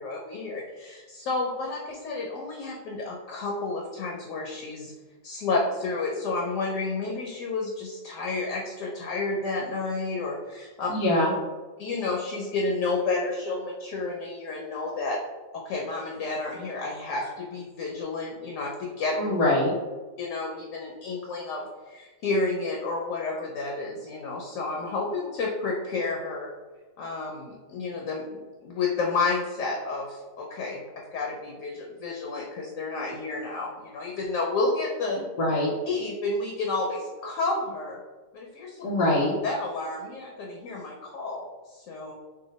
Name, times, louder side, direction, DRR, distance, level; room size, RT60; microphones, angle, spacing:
voice 1, 0.0-4.9 5.2-10.9 11.8-15.2 15.5-19.2 20.2-26.5 27.0-35.2 35.9-38.0 38.3-38.8 39.4-42.1, left 3 dB, 70° left, -1 dB, 0.8 m, -31 dB
voice 2, 10.9-11.3 19.2-19.7 35.4-35.7 38.8-39.3, left 1 dB, 85° left, -4 dB, 1.2 m, -23 dB
2.8 x 2.2 x 3.9 m, 1.3 s
omnidirectional pair, 1.7 m